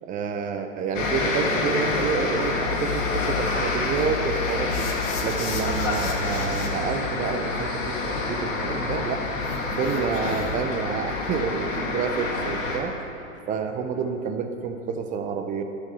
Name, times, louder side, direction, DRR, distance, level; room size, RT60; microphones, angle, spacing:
voice 1, 0.0-4.9 5.2-9.3 9.7-13.1 13.5-15.6, right 5 dB, 20° right, 7 dB, 0.7 m, -29 dB
sound 1, 0.9-12.8, left 3 dB, 70° left, 2.5 m, -27 dB
sound 2, 4.7-6.7 9.4-10.7, left 4 dB, 45° left, 2.0 m, -35 dB
13.0 x 6.2 x 6.9 m, 2.9 s
hypercardioid pair, 125°, 40 cm